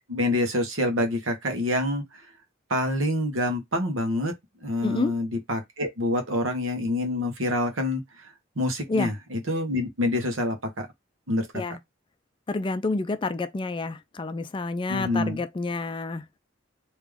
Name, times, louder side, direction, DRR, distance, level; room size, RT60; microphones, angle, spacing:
voice 1, 0.1-2.0 2.7-4.3 4.6-8.3 8.6-10.9 11.3-11.5 14.9-15.4, left 1 dB, 80° right, 1.3 m, -26 dB
voice 2, 4.8-5.1 8.9-9.1 11.5-11.8 12.5-16.3, left 3 dB, 25° left, 0.4 m, -28 dB
3.6 x 3.0 x 3.5 m
head